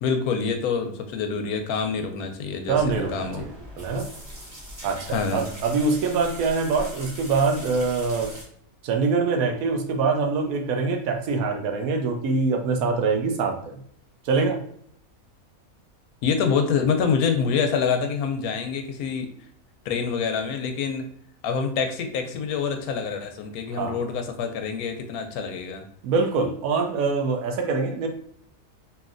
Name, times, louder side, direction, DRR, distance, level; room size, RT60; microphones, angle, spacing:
voice 1, 0.0-3.5 5.1-5.5 16.2-19.3 19.8-21.1 21.4-25.8, left 6 dB, 85° left, 5 dB, 1.1 m, -26 dB
sound 1, 2.7-8.4, equal, 30° right, 0.9 m, -40 dB
voice 2, 2.7-3.5 3.8-4.1 4.8-8.3 8.8-13.8 14.2-14.6 23.7-24.0 26.0-28.1, right 4 dB, 80° right, 4 dB, 1.0 m, -24 dB
3.1 x 2.7 x 2.4 m, 0.64 s
omnidirectional pair, 1.5 m